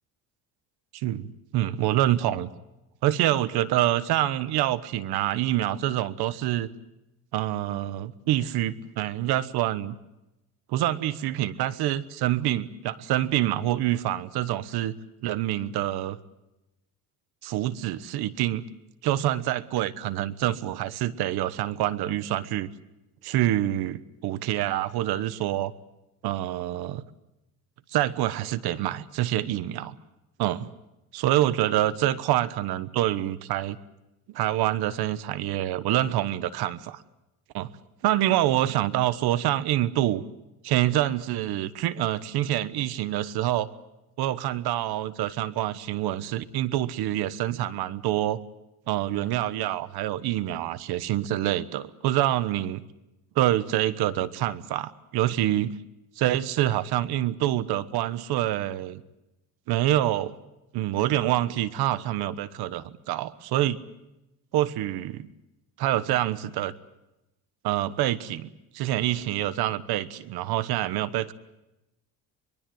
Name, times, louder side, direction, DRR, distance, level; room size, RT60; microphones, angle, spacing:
voice 1, 0.9-2.5 3.0-6.7 7.3-10.0 10.7-14.9 15.2-16.2 17.4-18.6 19.0-22.7 23.2-25.7 26.2-27.0 27.9-29.9 30.4-30.7 31.1-33.8 34.3-37.0 37.5-37.7 38.0-40.2 40.6-43.7 44.2-48.4 48.9-52.8 53.3-55.8 56.2-59.0 59.7-60.3 60.7-63.8 64.5-65.3 65.8-66.7 67.6-68.5 68.7-71.3, right 13 dB, 80° right, 16 dB, 1.3 m, -26 dB
23.5 x 23.5 x 7.9 m, 0.93 s
cardioid pair, 110°, 37 cm